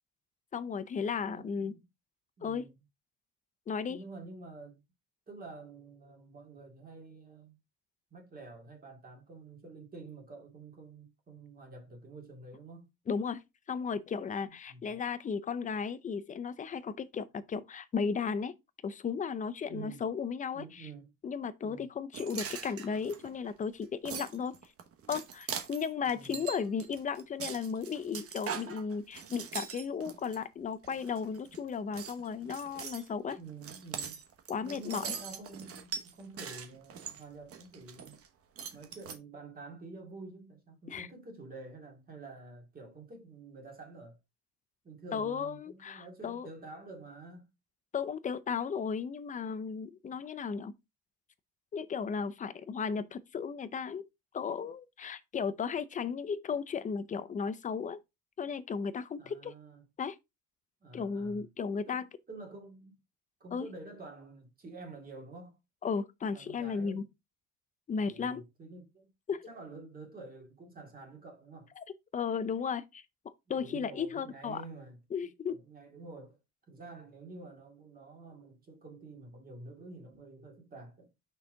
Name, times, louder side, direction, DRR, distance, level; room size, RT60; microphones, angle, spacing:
voice 1, 0.5-1.7 2.4-2.7 3.7-4.0 13.1-13.4 13.7-18.5 18.8-20.9 21.2-24.6 25.1-33.4 34.5-35.0 40.9-41.1 45.1-46.5 47.9-50.7 51.7-54.0 54.3-58.0 58.4-59.5 60.0-60.2 60.9-62.1 63.5-63.7 65.8-67.0 67.9-68.4 69.3-69.5 71.8-71.9 72.1-74.6 75.1-75.6, left 6 dB, 20° left, 0.5 m, -35 dB
voice 2, 1.2-1.8 2.4-2.8 3.9-4.8 5.3-7.6 8.1-12.9 14.4-15.0 19.7-20.0 20.5-21.1 21.6-21.9 26.0-26.4 33.3-34.2 34.6-38.2 38.7-44.2 44.8-47.5 59.2-59.8 60.8-61.5 61.8-63.0 63.4-65.5 66.3-67.0 67.9-69.1 69.5-71.7 73.5-75.0 75.2-76.4 76.7-81.1, right 3 dB, 25° right, 2.2 m, -49 dB
sound 1, 22.1-30.4 30.8-31.6 31.9-38.3 38.6-39.2, right 7 dB, 40° right, 1.0 m, -42 dB
5.9 x 4.5 x 3.7 m
cardioid pair, 150°, 36 cm